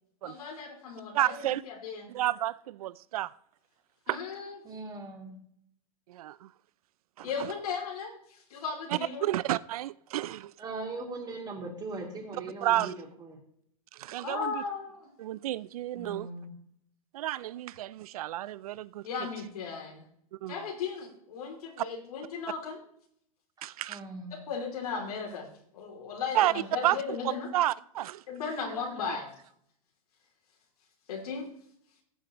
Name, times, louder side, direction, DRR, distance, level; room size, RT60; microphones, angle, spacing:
voice 1, 0.2-2.1 4.1-4.6 7.2-9.3 14.2-15.1 19.0-20.0 20.5-22.8 24.3-25.5 25.7-27.5 28.3-29.3 31.1-31.5, left 5 dB, 80° left, 2.8 m, -36 dB
voice 2, 1.1-1.6 2.1-3.3 4.1-4.2 6.1-6.5 7.2-7.3 8.9-10.5 12.6-13.0 13.9-14.6 15.2-16.3 17.1-19.0 20.4-20.5 23.6-24.0 26.3-26.5 26.8-27.0 27.5-28.2 29.1-29.2, right 14 dB, 75° right, 0.4 m, -30 dB
voice 3, 4.6-5.4 10.6-13.4 15.9-16.5 23.9-24.4, right 3 dB, 20° right, 2.8 m, -40 dB
16.0 x 7.7 x 3.0 m
hypercardioid pair, 120°, 19 cm